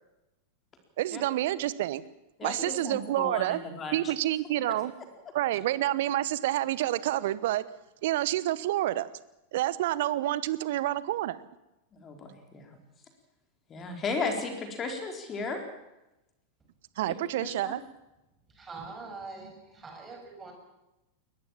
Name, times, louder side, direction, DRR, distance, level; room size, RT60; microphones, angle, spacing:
voice 1, 1.0-2.0 2.4-3.6 3.9-4.9 5.3-7.6 8.0-9.1 9.5-11.4 17.0-17.8, right 14 dB, 55° right, 18 dB, 1.0 m, -28 dB
voice 2, 2.4-4.1 11.9-12.8 13.7-15.6 17.1-17.8, left 4 dB, 25° left, 4 dB, 4.1 m, -35 dB
voice 3, 18.5-20.5, right 4 dB, 20° right, 4 dB, 6.8 m, -43 dB
22.0 x 20.5 x 7.4 m, 0.96 s
figure-of-eight pair, 90°, 0 cm